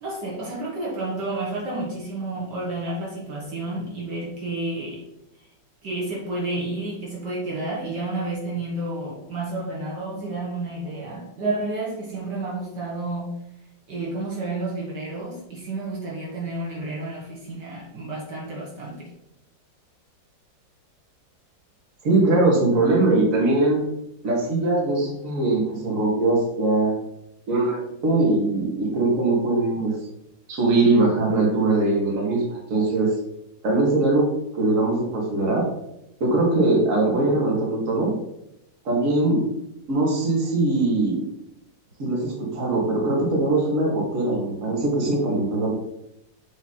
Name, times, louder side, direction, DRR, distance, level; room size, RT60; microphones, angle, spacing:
voice 1, 0.0-5.0 5.8-13.3 13.9-19.1, right 2 dB, 65° right, -4 dB, 1.8 m, -30 dB
voice 2, 22.0-23.8 24.2-27.0 27.5-30.0 30.5-33.1 33.6-34.3 34.5-35.6 36.2-38.1 38.9-39.4 39.9-41.2 42.0-45.7, right 2 dB, 45° right, -2 dB, 1.8 m, -21 dB
7.4 x 3.1 x 4.2 m, 0.83 s
omnidirectional pair, 2.0 m